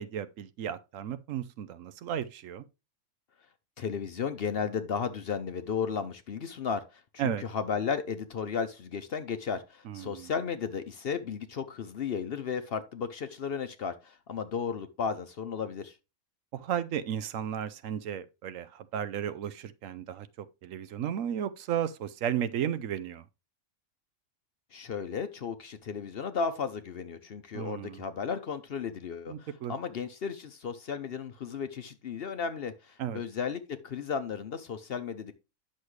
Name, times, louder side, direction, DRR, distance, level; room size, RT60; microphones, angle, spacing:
voice 1, 0.0-2.6 7.2-7.4 9.9-10.3 16.5-23.2 27.5-28.1 29.3-29.8 33.0-33.2, right 9 dB, 75° right, 1.0 m, -34 dB
voice 2, 3.8-16.0 24.7-35.3, left 6 dB, 55° left, 0.8 m, -34 dB
9.9 x 6.4 x 3.1 m
omnidirectional pair, 1.4 m